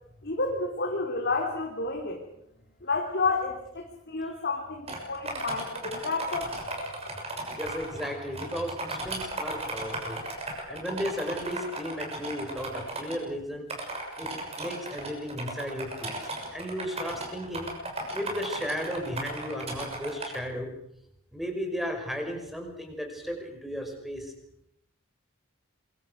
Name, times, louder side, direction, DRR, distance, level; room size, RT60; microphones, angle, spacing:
voice 1, 0.2-2.2 2.8-6.5, left 3 dB, 50° left, 1 dB, 3.3 m, -30 dB
sound 1, 4.9-13.2 13.7-20.4, right 2 dB, 30° right, 6.6 m, -36 dB
voice 2, 7.5-10.2 10.7-13.6 14.2-16.2 16.5-17.7 18.1-20.7 21.3-24.3, equal, ahead, 3 dB, 5.6 m, -35 dB
27.5 x 23.5 x 6.5 m, 0.75 s
head